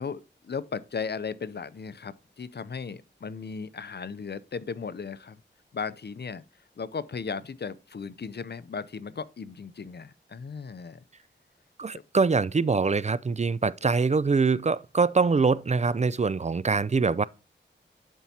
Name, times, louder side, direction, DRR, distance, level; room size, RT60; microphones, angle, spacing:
voice 1, 0.0-5.4 5.7-11.0, left 5 dB, 60° left, 0.6 m, -36 dB
voice 2, 11.8-17.2, right 4 dB, 35° right, 0.4 m, -24 dB
11.0 x 4.5 x 2.8 m
cardioid pair, 45°, 20 cm